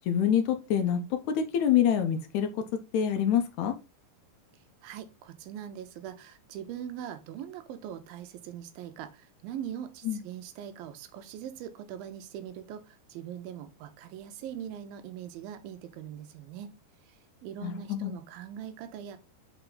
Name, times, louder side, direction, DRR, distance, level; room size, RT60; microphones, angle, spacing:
voice 1, 0.1-2.5 2.9-3.8 10.1-10.2 17.6-18.1, left 9 dB, 75° left, 1.8 m, -26 dB
voice 2, 4.8-16.8 17.1-19.2, right 9 dB, 85° right, 2.6 m, -41 dB
5.8 x 4.6 x 3.8 m
omnidirectional pair, 4.1 m